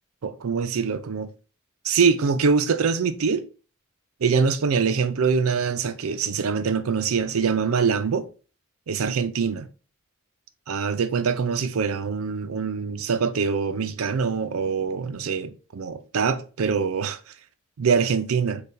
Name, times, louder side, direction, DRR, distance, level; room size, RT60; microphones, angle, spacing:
voice 1, 0.2-1.3 1.8-3.4 4.2-8.3 8.9-9.7 10.7-17.2 17.8-18.6, right 5 dB, 90° right, 0.5 m, -24 dB
6.5 x 2.4 x 2.7 m
head